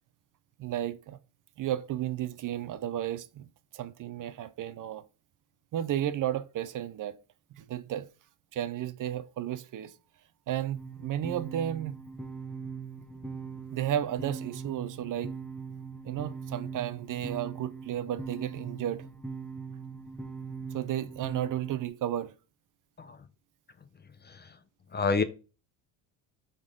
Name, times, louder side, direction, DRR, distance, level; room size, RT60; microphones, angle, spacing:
voice 1, 0.6-1.2 1.6-3.5 3.7-5.0 5.7-7.1 7.6-8.1 8.5-9.9 10.5-12.0 13.7-15.3 16.0-19.0 20.7-22.3, right 11 dB, 45° right, 0.6 m, -33 dB
sound 1, 10.7-21.9, right 5 dB, ahead, 1.1 m, -41 dB
voice 2, 24.2-24.6 24.9-25.2, left 4 dB, 25° left, 0.6 m, -29 dB
6.0 x 4.0 x 5.1 m
supercardioid pair, 100°, 45 cm